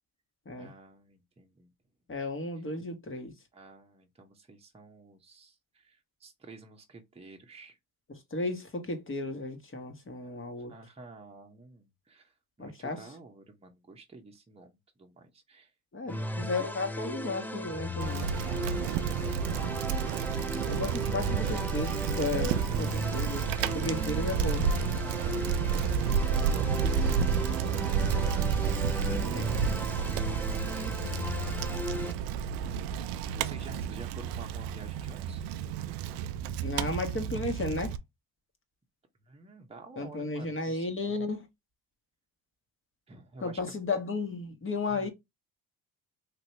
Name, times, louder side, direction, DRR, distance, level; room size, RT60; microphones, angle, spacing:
voice 1, 0.6-1.7 3.5-7.8 10.2-10.4 10.7-15.7 16.0-16.4 18.1-21.1 22.4-23.5 24.9-25.4 25.9-29.5 29.9-32.5 33.3-35.6 39.3-41.3 43.1-43.8 44.9-45.1, right 3 dB, 15° right, 0.9 m, -51 dB
voice 2, 2.1-3.3 8.1-10.7 12.6-13.0 15.9-18.3 20.7-23.5 23.7-24.6 29.1-29.5 36.6-38.0 40.0-41.5 43.4-45.1, left 3 dB, 30° left, 1.3 m, -34 dB
sound 1, 16.1-32.1, left 1 dB, 5° left, 0.4 m, -37 dB
Bicycle, 18.0-38.0, right 7 dB, 80° right, 0.5 m, -30 dB
3.3 x 2.9 x 2.8 m
supercardioid pair, 75°, 39 cm